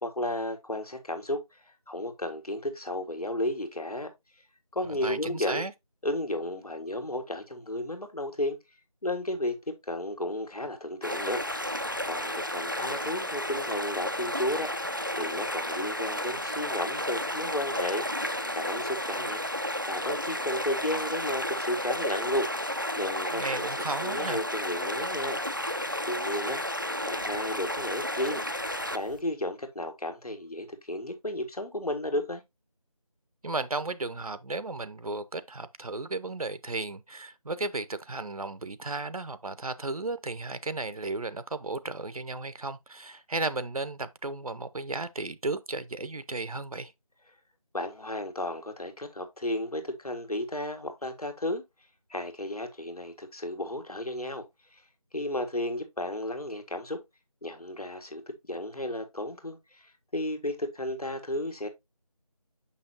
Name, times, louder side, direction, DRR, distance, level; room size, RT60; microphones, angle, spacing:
voice 1, 0.0-4.1 4.7-5.7 6.0-8.6 9.0-11.7 12.0-22.7 23.0-23.6 24.0-25.4 26.0-26.6 27.0-28.4 28.9-32.4 47.7-51.6 52.1-54.5 54.7-54.8 55.1-57.0 57.4-58.2 58.5-61.7, left 1 dB, 85° left, 1.9 m, -33 dB
voice 2, 4.9-5.7 23.3-24.4 33.4-46.9, right 3 dB, 75° right, 0.7 m, -34 dB
sound 1, 11.0-29.2, left 1 dB, 35° right, 0.4 m, -32 dB
6.3 x 5.7 x 2.8 m
figure-of-eight pair, 175°, 19 cm